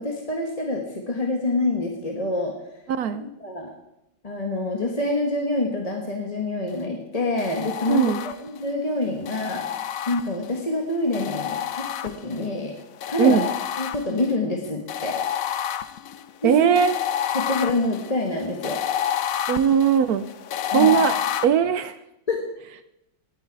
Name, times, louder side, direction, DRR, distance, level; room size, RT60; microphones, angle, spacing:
voice 1, 0.0-2.5 3.4-3.7 4.2-9.6 10.1-12.8 13.1-13.4 13.8-15.2 16.4-16.7 17.3-18.8 20.7-21.0 22.3-22.4, left 2 dB, 20° left, 1 dB, 1.2 m, -26 dB
voice 2, 3.0-3.3 7.9-8.2 13.2-13.5 16.4-17.0 19.5-20.2 20.7-21.2 21.4-21.9, right 8 dB, 75° right, 12 dB, 0.8 m, -19 dB
sound 1, 7.4-8.6 9.3-10.6 11.1-12.5 13.0-14.3 14.9-21.4, left 9 dB, 75° left, 0.7 m, -29 dB
18.5 x 9.0 x 4.7 m, 0.87 s
omnidirectional pair, 2.2 m